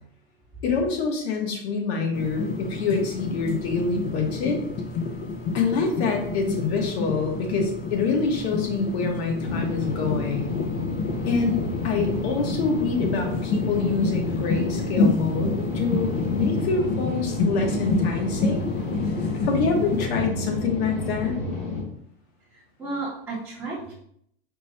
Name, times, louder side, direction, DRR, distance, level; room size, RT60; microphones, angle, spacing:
voice 1, 0.6-4.6 5.5-10.6 11.2-18.7 19.4-21.4, left 4 dB, 85° left, 2 dB, 1.1 m, -26 dB
sound 1, 2.1-20.1, left 3 dB, 35° left, 0.4 m, -29 dB
sound 2, 9.4-21.8, left 2 dB, 60° left, 1.3 m, -30 dB
voice 2, 22.5-23.9, right 3 dB, 10° right, -11 dB, 0.7 m, -33 dB
4.4 x 2.1 x 4.0 m, 0.69 s
supercardioid pair, 170°, 31 cm